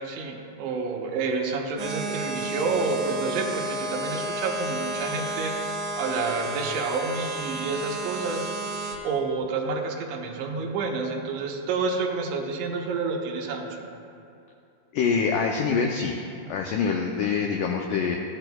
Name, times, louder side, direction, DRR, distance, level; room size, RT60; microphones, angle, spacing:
voice 1, 0.0-8.5 9.0-13.8, right 4 dB, 85° right, 0 dB, 1.6 m, -29 dB
sound 1, 1.8-9.0, right 1 dB, 65° right, 2.4 m, -32 dB
voice 2, 14.9-16.2 16.5-18.2, left 5 dB, 85° left, 1 dB, 1.8 m, -25 dB
13.5 x 8.7 x 2.3 m, 2.7 s
omnidirectional pair, 4.3 m